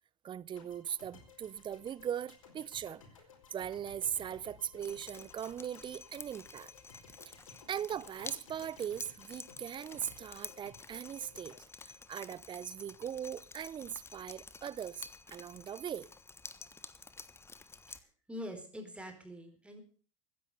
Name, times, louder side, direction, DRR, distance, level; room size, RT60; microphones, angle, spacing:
voice 1, 0.2-3.0 3.5-6.7 7.3-7.4 7.7-11.6 11.8-16.1, right 9 dB, 30° right, 0.6 m, -40 dB
sound 1, 0.6-12.8, left 4 dB, 80° left, 4.5 m, -58 dB
Drip, 4.8-18.0, left 4 dB, 15° left, 1.3 m, -51 dB
voice 2, 17.9-19.8, equal, 5° right, 4.6 m, -45 dB
15.0 x 10.0 x 6.8 m
hypercardioid pair, 90°, 17 cm